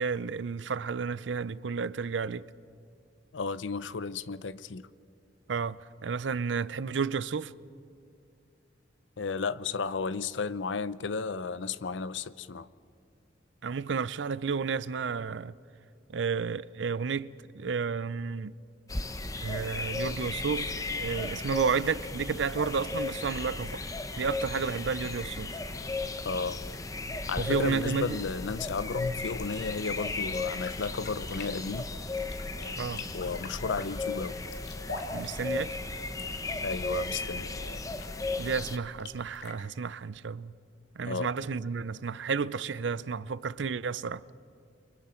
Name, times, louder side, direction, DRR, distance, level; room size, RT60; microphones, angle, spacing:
voice 1, 0.0-2.5 5.5-7.5 13.6-15.5 16.1-18.5 19.4-23.8 24.2-25.6 27.4-28.2 32.8-33.1 35.1-35.8 38.4-40.5 41.0-44.2, right 5 dB, 80° right, 0.5 m, -32 dB
voice 2, 3.3-4.9 9.2-12.7 26.2-26.6 27.3-31.9 33.1-34.4 36.6-37.8 41.0-41.6, left 4 dB, 85° left, 0.6 m, -33 dB
sound 1, 18.9-38.8, left 3 dB, 20° left, 0.8 m, -35 dB
sound 2, 29.3-39.5, left 3 dB, 65° left, 2.6 m, -47 dB
29.0 x 24.0 x 4.4 m
head